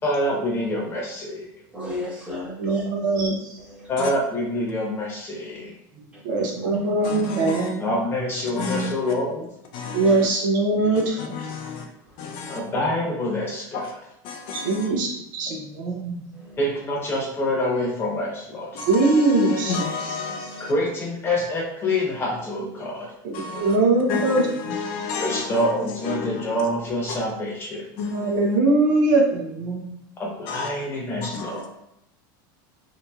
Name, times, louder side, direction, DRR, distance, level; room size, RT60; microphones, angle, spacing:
voice 1, 0.0-1.4 3.9-5.7 7.8-9.4 12.5-13.9 16.6-18.7 20.7-23.1 25.2-27.8 30.2-31.5, left 1 dB, 20° left, 0.9 m, -26 dB
voice 2, 1.7-2.9 3.6-3.9 6.1-6.9 14.5-14.9 16.3-16.6 20.1-20.7 23.5-23.9 31.5-31.7, equal, 10° right, 1.0 m, -36 dB
voice 3, 2.6-3.4 6.2-7.3 9.9-11.2 14.5-15.5 18.9-19.8 23.2-24.5 28.1-29.2, right 2 dB, 75° right, 0.8 m, -21 dB
voice 4, 5.5-6.1 7.4-7.9 10.8-11.0 11.3-11.4 15.5-16.3 19.9-20.6 24.3-24.8 29.3-30.0, right 4 dB, 35° right, 0.5 m, -31 dB
voice 5, 7.0-7.6 8.6-8.9 9.7-10.3 11.3-11.8 12.2-12.6 13.7-13.9 14.2-14.9 18.7-20.7 23.3-23.7 24.1-24.3 24.6-25.7 26.0-26.4 27.1-27.2 28.0-28.3 30.5-30.7 31.3-31.5, left 4 dB, 55° left, 0.5 m, -30 dB
2.8 x 2.7 x 2.3 m
supercardioid pair, 135°, 10 cm